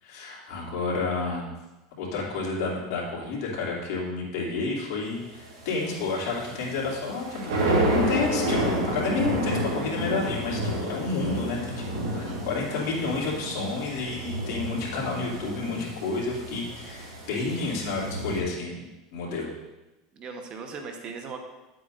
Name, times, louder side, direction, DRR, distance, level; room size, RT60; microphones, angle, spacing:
voice 1, 0.0-1.5 2.0-7.5 7.9-19.5, left 3 dB, 65° left, -4 dB, 2.7 m, -30 dB
sound 1, 5.3-18.4, right 1 dB, 85° right, 3.0 m, -30 dB
voice 2, 12.2-12.9 20.1-21.4, right 5 dB, 40° right, 4 dB, 1.1 m, -39 dB
10.5 x 7.8 x 2.6 m, 1.0 s
supercardioid pair, 115°, 2 cm